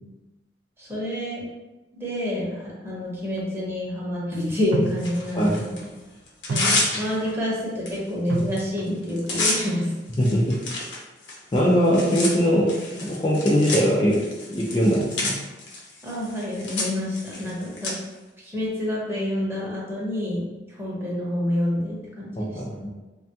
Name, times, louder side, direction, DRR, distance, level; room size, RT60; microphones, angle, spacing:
voice 1, 0.8-1.5 1.9-5.8 6.5-9.9 16.0-17.9 18.4-20.4 20.8-22.8, left 1 dB, 15° right, -6 dB, 0.8 m, -28 dB
sound 1, 3.4-3.5 4.7-5.5 5.8-6.1 6.5-7.4 8.3-9.1 9.5-9.7, right 3 dB, 75° right, 0.3 m, -32 dB
Tearing, 5.0-5.8 6.3-7.3 7.9-8.0 8.3-8.6 8.9-17.9, left 2 dB, 90° left, 0.7 m, -30 dB
voice 2, 10.2-10.6 11.5-15.3 22.4-22.9, equal, 25° left, -5 dB, 0.4 m, -21 dB
3.3 x 2.2 x 2.7 m, 1.1 s
head